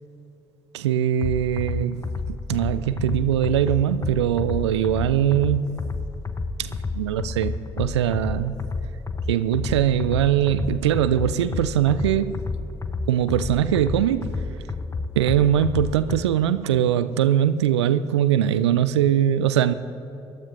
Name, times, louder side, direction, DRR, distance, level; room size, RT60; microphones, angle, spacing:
voice 1, 0.7-5.8 6.6-8.6 9.3-12.4 13.1-14.6 15.2-19.7, right 10 dB, 80° right, 0.4 m, -22 dB
sound 1, 1.2-16.2, left 3 dB, 20° left, 0.8 m, -30 dB
25.0 x 12.5 x 2.6 m
figure-of-eight pair, 45°, 14 cm